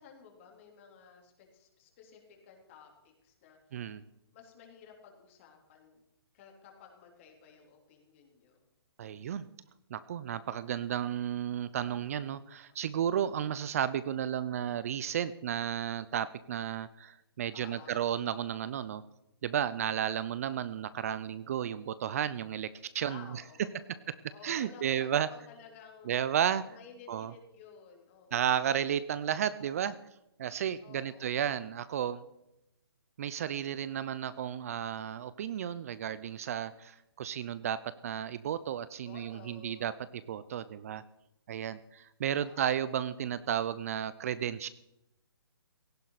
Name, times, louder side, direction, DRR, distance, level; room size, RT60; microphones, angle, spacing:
voice 1, 0.0-4.0 4.3-6.0 6.3-8.6 17.5-18.1 23.0-26.3 26.7-28.7 30.8-31.6 39.0-39.8 42.2-42.8, left 6 dB, 30° left, 1 dB, 3.6 m, -54 dB
voice 2, 9.0-9.4 9.9-19.0 19.4-22.7 22.9-23.2 24.4-25.3 26.1-26.6 27.1-27.3 28.3-29.9 30.4-32.2 33.2-41.0 41.5-44.7, right 9 dB, 35° right, 15 dB, 0.5 m, -33 dB
17.5 x 15.0 x 4.1 m, 0.87 s
hypercardioid pair, 160°, 13 cm